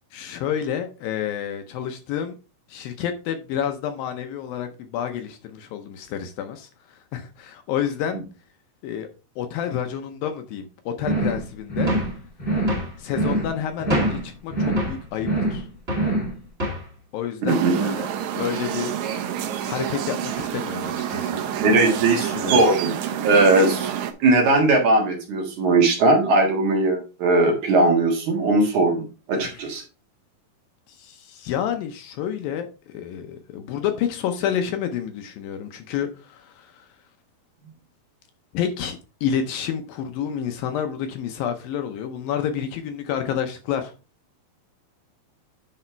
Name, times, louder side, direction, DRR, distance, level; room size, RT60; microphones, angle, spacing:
voice 1, 0.1-2.3 2.7-8.2 8.8-9.1 9.4-11.9 13.0-15.7 17.1-18.9 19.7-21.4 22.0-22.6 29.3-29.7 30.9-32.7 32.9-36.9 38.5-43.9, left 9 dB, 75° left, 2.3 m, -29 dB
sound 1, 11.0-11.4 11.7-12.1 12.4-12.8 13.1-13.5 13.8-14.2 14.5-14.9 15.2-15.6 15.9-16.3, right 1 dB, 20° left, 1.4 m, -24 dB
sound 2, 11.9-12.2 12.7-12.9 13.9-14.3 14.8-15.0 15.9-16.1 16.6-16.9, left 1 dB, 25° right, 1.5 m, -27 dB
voice 2, 17.4-17.8 21.6-22.9 23.2-23.9 24.2-29.8, right 2 dB, 55° right, 2.7 m, -19 dB
sound 3, 17.5-24.1, right 9 dB, 80° right, 1.7 m, -28 dB
9.8 x 4.2 x 4.4 m
omnidirectional pair, 4.5 m